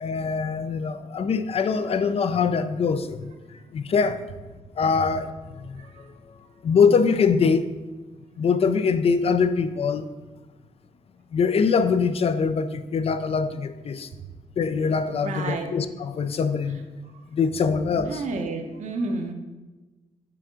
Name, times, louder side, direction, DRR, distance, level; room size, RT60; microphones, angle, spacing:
voice 1, 0.0-3.3 3.7-4.2 4.8-5.3 5.7-5.8 6.6-7.7 8.4-10.1 11.3-14.1 14.6-16.8 17.3-18.2, left 5 dB, 55° left, 0.4 m, -23 dB
voice 2, 15.2-15.7 17.9-19.3, right 3 dB, 80° right, 0.8 m, -30 dB
5.8 x 3.5 x 5.0 m
cardioid pair, 90°, 12 cm